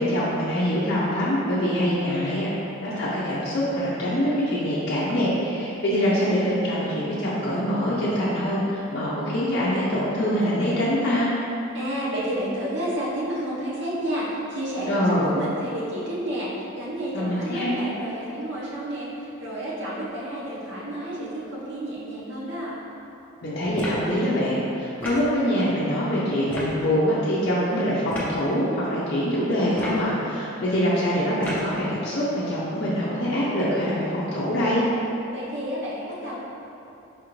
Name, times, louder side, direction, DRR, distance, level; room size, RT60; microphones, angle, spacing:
voice 1, 0.0-2.5 2.8-11.3 14.8-15.3 17.1-17.7 23.4-34.8, equal, 50° left, -9 dB, 0.5 m, -24 dB
voice 2, 11.7-22.8 35.3-36.4, right 1 dB, 60° right, -7 dB, 0.9 m, -30 dB
sound 1, 23.7-24.1 25.0-25.3 26.5-26.7 28.1-28.3 29.7-30.1 31.4-31.7, left 1 dB, 10° left, 0.6 m, -32 dB
4.9 x 2.5 x 3.0 m, 2.9 s
head